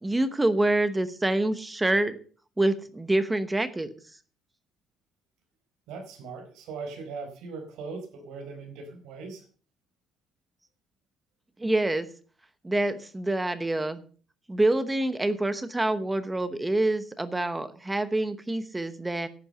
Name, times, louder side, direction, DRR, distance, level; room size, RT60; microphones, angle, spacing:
voice 1, 0.0-2.2 2.6-3.9 11.6-12.1 12.6-14.0 14.5-19.3, right 2 dB, 10° right, 12 dB, 0.9 m, -26 dB
voice 2, 5.9-9.4, right 4 dB, 90° right, 5 dB, 4.4 m, -39 dB
11.5 x 8.7 x 6.7 m, 0.41 s
cardioid pair, 175°, 0 cm